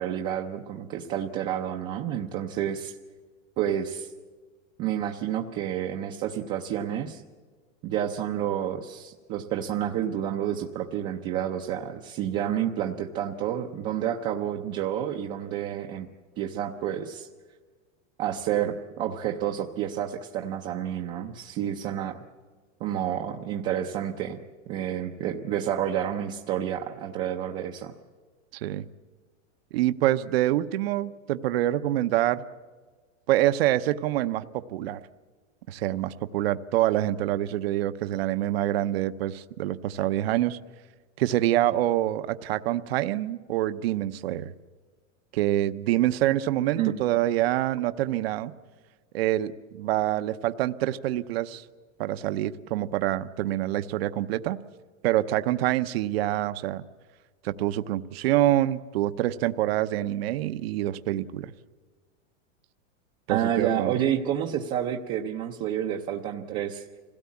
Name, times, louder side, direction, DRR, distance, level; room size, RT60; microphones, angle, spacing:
voice 1, 0.0-2.9 3.6-4.1 4.8-7.2 7.8-16.1 16.4-17.3 18.2-22.2 22.8-24.4 24.7-27.9 46.7-46.9 63.3-66.8, right 10 dB, 20° right, 1 dB, 0.6 m, -29 dB
voice 2, 29.7-32.4 33.3-35.0 35.7-40.6 41.2-44.5 45.3-48.5 49.1-51.7 52.0-54.6 55.0-56.8 57.4-61.5 63.3-64.0, right 14 dB, 50° right, 11 dB, 0.8 m, -26 dB
26.0 x 17.0 x 8.4 m, 1.5 s
supercardioid pair, 170°, 38 cm